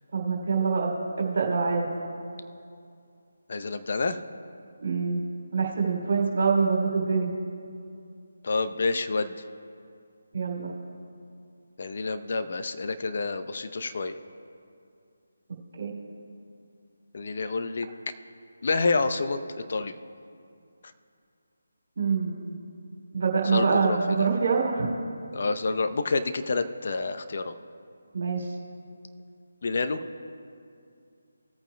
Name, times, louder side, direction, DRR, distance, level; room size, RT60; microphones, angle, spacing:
voice 1, 0.1-1.9 4.8-5.2 5.5-7.3 10.3-10.7 15.8-15.9 22.0-22.5 23.1-24.9 28.1-28.5, right 5 dB, 55° right, 0 dB, 2.8 m, -25 dB
voice 2, 3.5-4.2 8.4-9.4 11.8-14.1 17.1-17.9 18.6-19.4 19.7-20.0 23.4-24.3 25.3-27.5 29.6-30.0, left 3 dB, 50° left, 9 dB, 0.7 m, -28 dB
18.5 x 9.0 x 2.2 m, 2.4 s
figure-of-eight pair, 155°, 0 cm